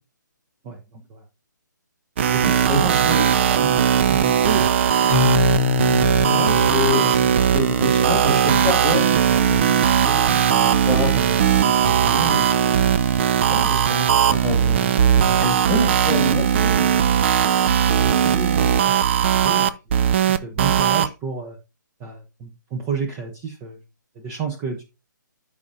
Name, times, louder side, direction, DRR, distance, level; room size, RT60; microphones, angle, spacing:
voice 1, 0.6-1.2 2.3-3.0 3.4-4.8 17.9-19.7 20.3-21.6 22.0-23.8 24.1-24.8, right 5 dB, 20° right, 4 dB, 0.9 m, -31 dB
sound 1, 2.2-21.1, right 8 dB, 35° right, 0.5 m, -18 dB
voice 2, 2.4-3.3 6.2-12.5 13.5-16.9, left 1 dB, 5° left, 3 dB, 2.0 m, -28 dB
Keyboard (musical), 5.1-8.8, left 10 dB, 25° left, 1.0 m, -26 dB
13.5 x 5.1 x 2.7 m, 0.28 s
figure-of-eight pair, 135°, 11 cm